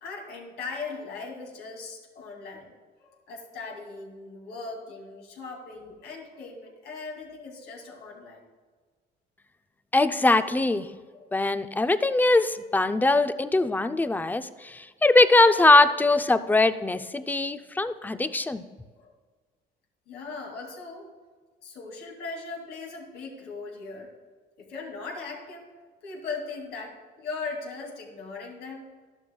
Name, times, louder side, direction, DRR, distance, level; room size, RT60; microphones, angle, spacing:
voice 1, 0.0-2.7 3.0-8.4 11.1-11.3 18.2-18.3 19.0-19.1 20.1-21.1 21.6-24.1 24.6-25.7 26.0-28.9, left 4 dB, 75° left, 0 dB, 2.7 m, -39 dB
voice 2, 9.9-10.9 11.3-18.6, left 2 dB, 10° left, 11 dB, 0.5 m, -21 dB
13.0 x 11.5 x 2.3 m, 1.5 s
cardioid pair, 110°, 17 cm